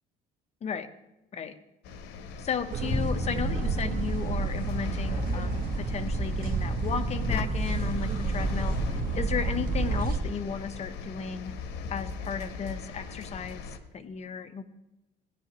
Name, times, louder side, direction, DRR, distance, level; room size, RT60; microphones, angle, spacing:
sound 1, 1.8-13.8, left 5 dB, 85° left, 1.1 m, -40 dB
voice 1, 2.4-8.7 9.1-11.5 11.9-14.6, left 6 dB, 40° left, 9 dB, 1.0 m, -34 dB
sound 2, 2.7-10.2, right 3 dB, 55° right, 1.5 m, -29 dB
Bowed string instrument, 2.9-9.0, left 5 dB, 20° left, 0.4 m, -40 dB
17.5 x 10.5 x 3.0 m, 0.95 s
cardioid pair, 110°, 17 cm